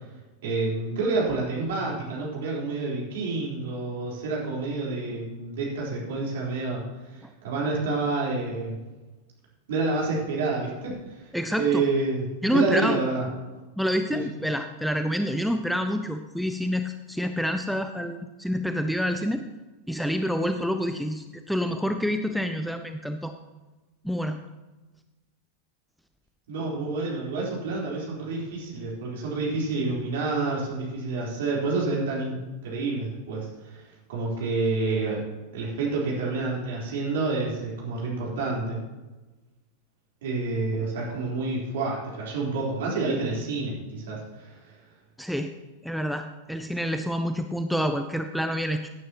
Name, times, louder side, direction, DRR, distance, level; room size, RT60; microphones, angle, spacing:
voice 1, 0.4-6.8 7.1-8.8 9.7-11.3 11.6-12.2 12.5-13.2 14.1-14.2 26.5-32.4 32.6-33.8 34.1-35.2 35.5-38.8 40.2-44.7, right 3 dB, 55° right, -4 dB, 4.1 m, -28 dB
voice 2, 11.3-11.8 12.4-13.0 13.8-19.5 19.9-23.3 24.0-24.4 45.2-45.5 45.8-48.9, equal, ahead, 7 dB, 0.6 m, -27 dB
16.5 x 9.3 x 3.0 m, 1.2 s
figure-of-eight pair, 90°, 0 cm